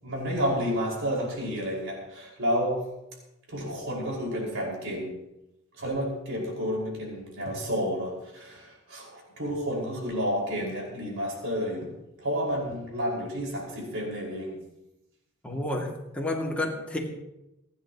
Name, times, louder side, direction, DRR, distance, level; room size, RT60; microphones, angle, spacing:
voice 1, 0.0-2.9 3.5-5.2 5.8-14.6, equal, 65° right, -2 dB, 5.3 m, -30 dB
voice 2, 15.4-17.0, left 1 dB, 5° left, -1 dB, 2.4 m, -30 dB
28.0 x 10.5 x 3.0 m, 0.89 s
head